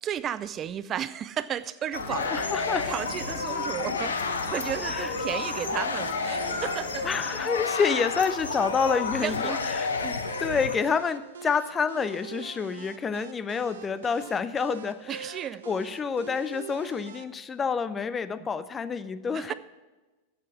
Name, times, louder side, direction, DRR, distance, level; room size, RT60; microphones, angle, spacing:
voice 1, 0.0-2.5 2.9-7.1 9.2-9.6 10.0-10.2 15.1-15.6 19.3-19.5, right 9 dB, 30° right, 14 dB, 0.4 m, -33 dB
sound 1, 1.9-10.8, left 4 dB, 70° left, 0.9 m, -31 dB
sound 2, 2.0-7.2, right 1 dB, 45° right, 4.9 m, -43 dB
voice 2, 2.2-2.9 4.8-5.1 7.0-9.9 10.4-15.4 15.7-19.5, left 5 dB, 20° left, 15 dB, 0.6 m, -28 dB
sound 3, 2.2-17.2, right 7 dB, 65° right, 0.8 m, -44 dB
12.0 x 8.3 x 6.2 m, 1.2 s
figure-of-eight pair, 90°, 0 cm